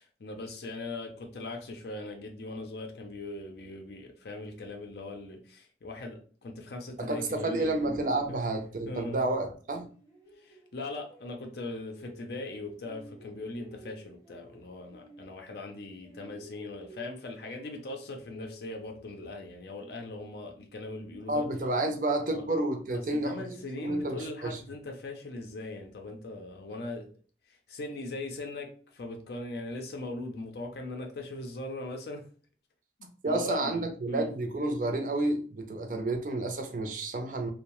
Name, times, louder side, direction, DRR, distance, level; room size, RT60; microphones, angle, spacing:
voice 1, 0.0-7.8 8.3-8.4 8.9-9.3 10.4-21.5 22.3-22.5 22.9-27.1 27.7-32.3 33.0-34.3, left 2 dB, 65° left, 0.5 m, -40 dB
voice 2, 7.0-9.9 21.3-23.4 23.8-24.6 33.2-37.5, right 2 dB, 45° right, 0.5 m, -30 dB
sound 1, 9.8-12.5 12.8-19.6, equal, 15° left, 0.7 m, -53 dB
2.6 x 2.0 x 3.0 m
head